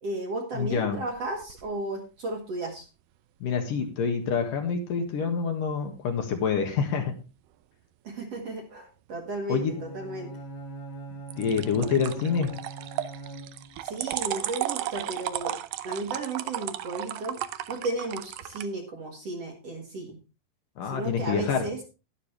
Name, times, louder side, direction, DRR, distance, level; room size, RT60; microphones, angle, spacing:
voice 1, 0.0-2.9 8.0-10.3 13.8-15.6 15.8-17.4 17.7-20.2 20.8-21.8, right 2 dB, 50° right, 2 dB, 2.3 m, -34 dB
voice 2, 0.5-1.0 3.4-7.1 9.5-9.8 11.4-12.5 20.8-21.7, left 6 dB, 65° left, 4 dB, 3.0 m, -27 dB
sound 1, 1.0-1.7 11.3-18.7, right 13 dB, 85° right, 1.8 m, -34 dB
Bowed string instrument, 9.7-13.9, right 3 dB, 40° left, 1.9 m, -41 dB
11.5 x 11.5 x 3.3 m, 0.30 s
omnidirectional pair, 4.7 m